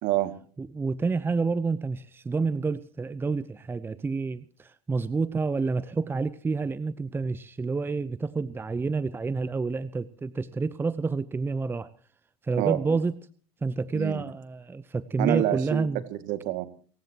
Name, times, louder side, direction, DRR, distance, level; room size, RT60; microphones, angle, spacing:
voice 1, 0.0-0.3 12.6-13.0 13.9-14.2 15.2-16.7, right 15 dB, 55° right, 10 dB, 2.3 m, -27 dB
voice 2, 0.6-11.9 12.4-13.1 13.6-16.0, right 4 dB, 15° right, 16 dB, 0.8 m, -29 dB
29.5 x 16.0 x 3.0 m, 0.43 s
hypercardioid pair, 90°, 15 cm